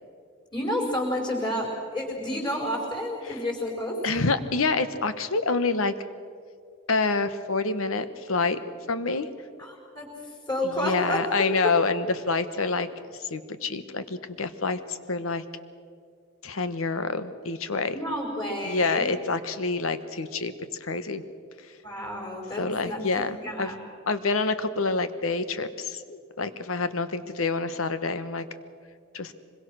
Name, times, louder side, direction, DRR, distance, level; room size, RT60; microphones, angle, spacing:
voice 1, 0.5-4.0 9.6-11.3 11.6-11.7 17.9-19.1 21.8-23.8, left 1 dB, 20° left, -5 dB, 4.8 m, -30 dB
voice 2, 4.0-5.9 6.9-8.6 8.9-9.3 10.8-12.9 13.2-15.4 16.4-17.9 18.6-20.5 20.8-21.2 22.6-23.7 24.1-28.4 29.1-29.3, left 3 dB, 85° left, 11 dB, 1.2 m, -27 dB
25.0 x 22.0 x 6.3 m, 2.2 s
head